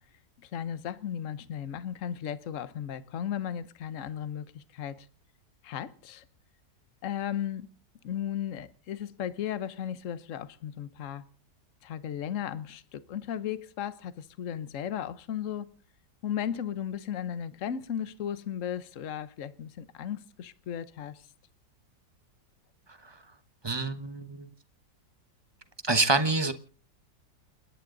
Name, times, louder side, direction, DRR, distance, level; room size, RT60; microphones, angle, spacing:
voice 1, 0.4-5.1 5.6-6.2 7.0-7.7 8.0-11.2 11.8-15.7 16.2-21.2, left 9 dB, 50° left, 1.2 m, -35 dB
voice 2, 23.6-24.5 25.8-26.5, right 3 dB, 20° right, 1.0 m, -27 dB
29.5 x 10.5 x 3.9 m
omnidirectional pair, 1.9 m